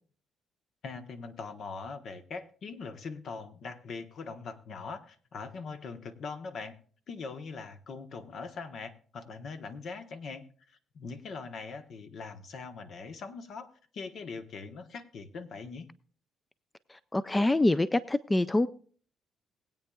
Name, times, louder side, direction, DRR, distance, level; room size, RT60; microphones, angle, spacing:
voice 1, 0.8-6.8 7.1-15.9, left 4 dB, 65° left, 8 dB, 1.1 m, -42 dB
voice 2, 16.9-18.7, left 2 dB, 15° left, 15 dB, 0.4 m, -26 dB
21.0 x 8.7 x 2.3 m, 0.43 s
cardioid pair, 90°, 0 cm